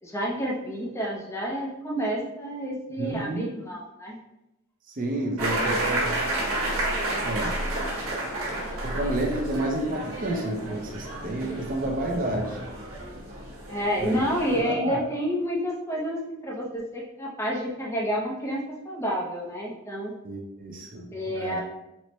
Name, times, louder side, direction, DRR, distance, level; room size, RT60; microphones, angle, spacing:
voice 1, 0.0-4.2 5.4-6.2 13.7-20.1 21.1-21.6, equal, 15° left, -3 dB, 0.5 m, -29 dB
voice 2, 3.0-3.5 4.9-6.2 7.2-7.6 8.8-12.6 14.0-14.2 14.5-15.0 20.2-21.6, right 1 dB, 40° right, 1 dB, 0.5 m, -30 dB
sound 1, 5.4-14.6, right 1 dB, 85° right, 1.2 m, -31 dB
4.2 x 2.1 x 3.0 m, 0.89 s
head